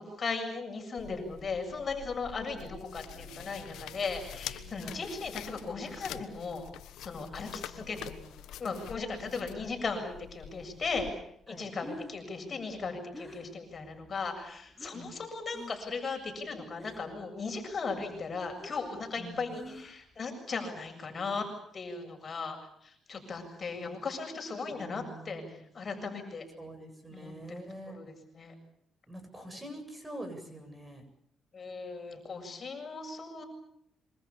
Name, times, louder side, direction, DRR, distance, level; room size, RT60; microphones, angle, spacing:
voice 1, 0.0-6.7 7.0-8.1 8.6-11.1 11.5-21.5 21.7-22.6 22.8-26.4 27.1-27.6 27.9-28.5 31.5-33.4, left 4 dB, 40° left, 4 dB, 7.4 m, -37 dB
sound 1, 1.0-11.1, left 11 dB, 85° left, 1.3 m, -46 dB
sound 2, 2.4-7.0, right 8 dB, 90° right, 6.2 m, -56 dB
voice 2, 7.7-8.7 11.5-11.7 14.9-15.2 19.2-19.5 24.7-25.6 26.6-28.0 29.1-31.0, right 1 dB, 15° right, 7 dB, 8.0 m, -46 dB
Breathing, 11.8-15.1 15.5-16.0 16.2-17.3 17.6-20.2, left 2 dB, ahead, 7.3 m, -48 dB
27.0 x 24.5 x 7.2 m, 0.72 s
cardioid pair, 90°, 0 cm